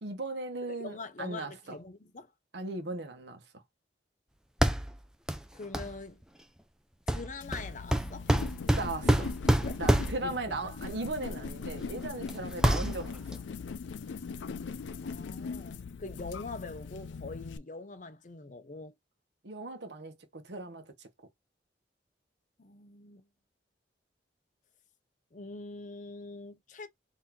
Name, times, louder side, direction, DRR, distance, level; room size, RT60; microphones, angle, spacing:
voice 1, 0.0-1.8 2.5-3.4 8.8-9.3 9.8-13.2 19.4-21.1, right 2 dB, 70° right, 0.9 m, -37 dB
voice 2, 0.7-2.3 5.5-6.2 7.1-8.3 9.2-9.3 9.6-9.8 10.2-10.7 15.0-19.0 22.6-23.2 25.3-26.9, left 3 dB, 40° left, 0.6 m, -44 dB
sound 1, 4.6-5.0 5.3-5.4 5.7-5.9 7.1-10.4 11.5-11.6 12.0-12.3 12.6-13.4, right 1 dB, 5° right, 0.4 m, -27 dB
sound 2, 7.4-17.6, left 5 dB, 85° left, 0.4 m, -40 dB
4.0 x 2.7 x 2.8 m
head